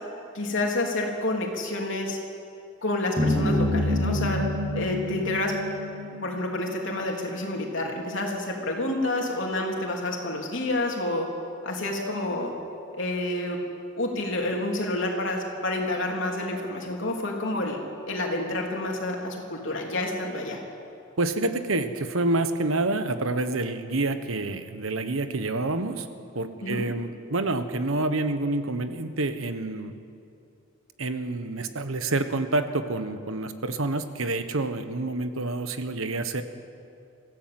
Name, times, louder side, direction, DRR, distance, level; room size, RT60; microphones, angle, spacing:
voice 1, 0.3-2.2 2.8-4.4 4.7-5.5 6.2-11.3 11.6-12.5 12.9-13.6 13.9-17.8 18.1-20.6 26.6-26.8, left 2 dB, 70° left, 0 dB, 3.4 m, -29 dB
sound 1, 3.2-7.5, left 1 dB, 30° right, 7.5 m, -28 dB
voice 2, 21.2-26.1 26.3-29.9 31.0-36.4, right 2 dB, 85° right, 9 dB, 1.3 m, -28 dB
24.5 x 15.0 x 7.8 m, 2.6 s
head